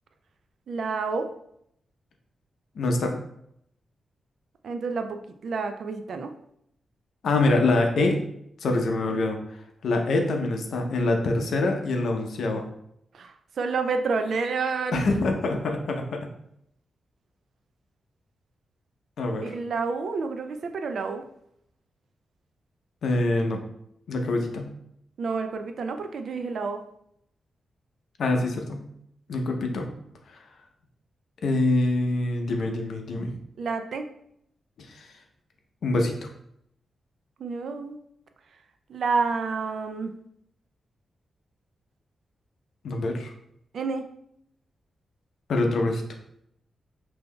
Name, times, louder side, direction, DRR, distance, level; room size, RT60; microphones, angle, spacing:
voice 1, 0.7-1.3 4.6-6.3 13.1-15.0 19.4-21.2 25.2-26.8 33.6-34.0 37.4-38.0 38.9-40.1 43.7-44.1, right 4 dB, 65° right, 7 dB, 0.4 m, -29 dB
voice 2, 2.8-3.1 7.2-8.2 8.6-9.4 9.8-12.6 14.9-16.3 19.2-19.5 23.0-23.6 24.1-24.7 28.2-28.8 29.3-29.9 30.3-30.5 31.4-33.3 34.8-35.1 35.8-36.2 42.8-43.3 45.5-46.0, left 2 dB, 70° left, 3 dB, 0.6 m, -25 dB
5.3 x 2.7 x 2.2 m, 0.73 s
wide cardioid pair, 155°, 0 cm